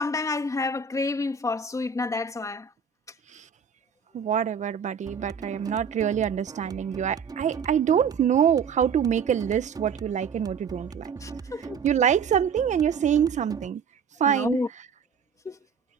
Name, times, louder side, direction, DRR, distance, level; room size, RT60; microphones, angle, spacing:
voice 1, 0.0-2.7 11.2-11.8 14.3-14.7 15.4-15.6, left 3 dB, 20° left, 3.4 m, -29 dB
voice 2, 4.1-11.0 11.8-13.8 14.2-14.6, right 9 dB, 45° right, 1.5 m, -25 dB
sound 1, 5.0-13.7, right 4 dB, 25° right, 3.4 m, -40 dB
cardioid pair, 110°, 17 cm